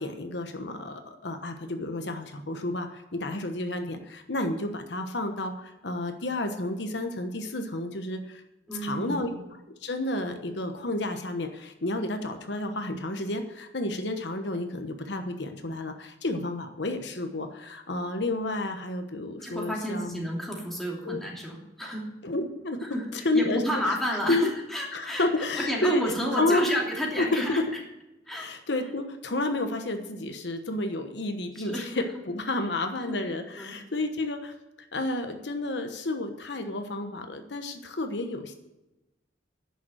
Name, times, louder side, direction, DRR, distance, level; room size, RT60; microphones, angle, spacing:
voice 1, 0.0-8.4 8.7-9.4 9.8-20.2 21.0-21.2 22.2-24.5 24.9-26.7 26.9-27.7 28.3-34.5 34.9-38.5, left 2 dB, 75° left, 6 dB, 1.1 m, -31 dB
voice 2, 8.7-9.3 19.4-22.0 22.8-25.3 25.6-27.6 28.3-28.5 31.6-31.9 33.0-33.2 33.6-33.7, equal, ahead, -3 dB, 2.9 m, -30 dB
11.0 x 7.0 x 7.9 m, 0.97 s
head